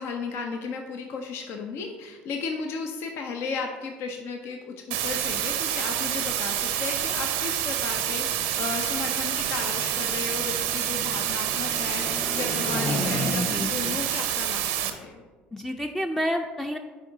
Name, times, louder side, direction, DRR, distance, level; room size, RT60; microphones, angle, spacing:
voice 1, 0.0-15.2, left 4 dB, 60° left, 4 dB, 0.7 m, -34 dB
sound 1, 4.9-14.9, right 10 dB, 75° right, 0.6 m, -28 dB
sound 2, 8.3-13.8, left 1 dB, 25° left, 1.2 m, -34 dB
voice 2, 13.5-14.0 15.5-16.8, equal, 5° left, 4 dB, 0.5 m, -29 dB
10.5 x 4.6 x 2.8 m, 1.4 s
hypercardioid pair, 65°, 5 cm